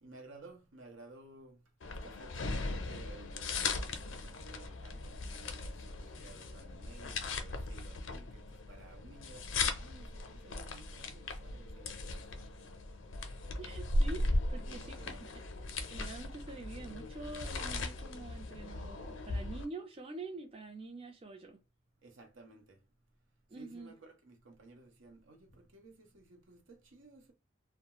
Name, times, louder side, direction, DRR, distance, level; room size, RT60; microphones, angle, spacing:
voice 1, 0.0-12.7 14.7-15.2 22.0-22.8 23.5-27.3, right 3 dB, 85° right, 0.7 m, -56 dB
sound 1, 1.8-19.7, left 2 dB, 80° left, 0.5 m, -38 dB
voice 2, 13.6-15.1 15.9-21.6 23.5-23.9, right 2 dB, 30° right, 0.4 m, -46 dB
2.3 x 2.0 x 2.9 m
head